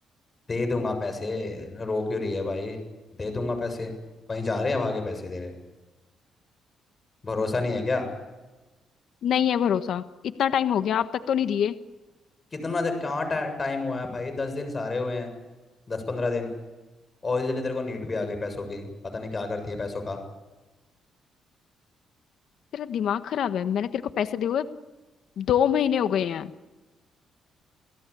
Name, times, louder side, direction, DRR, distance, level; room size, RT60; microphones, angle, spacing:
voice 1, 0.5-2.8 3.2-3.9 4.3-5.5 7.2-8.1 12.5-15.3 15.9-16.5 17.2-20.2, left 3 dB, 30° left, 7 dB, 7.4 m, -29 dB
voice 2, 9.2-11.7 22.7-24.7 25.4-26.5, left 9 dB, 70° left, 11 dB, 1.3 m, -25 dB
29.0 x 17.0 x 8.6 m, 1.2 s
cardioid pair, 90°, 0 cm